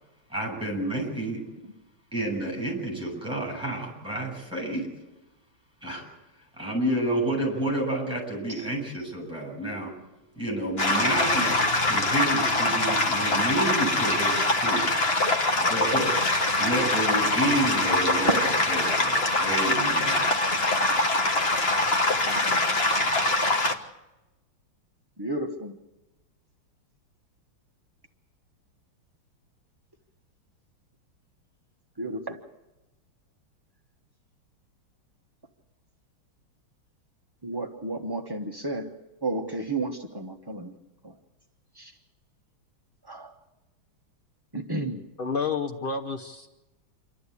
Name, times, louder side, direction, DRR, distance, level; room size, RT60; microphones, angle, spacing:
voice 1, 0.3-1.4 2.1-4.9 5.8-6.1 6.6-9.9 10.4-14.9 15.6-16.1 16.6-20.2, right 1 dB, ahead, 1 dB, 7.6 m, -29 dB
sound 1, 10.8-23.8, left 2 dB, 30° left, 1.4 m, -24 dB
voice 2, 22.2-23.2 25.2-25.8 32.0-32.4 37.4-38.9 39.2-40.7 41.0-41.1 41.7-42.0 43.0-43.3 44.5-45.0, right 2 dB, 25° right, 2 dB, 0.5 m, -33 dB
voice 3, 45.2-46.5, left 5 dB, 60° left, 6 dB, 0.5 m, -30 dB
27.5 x 12.5 x 8.4 m, 1.0 s
omnidirectional pair, 2.4 m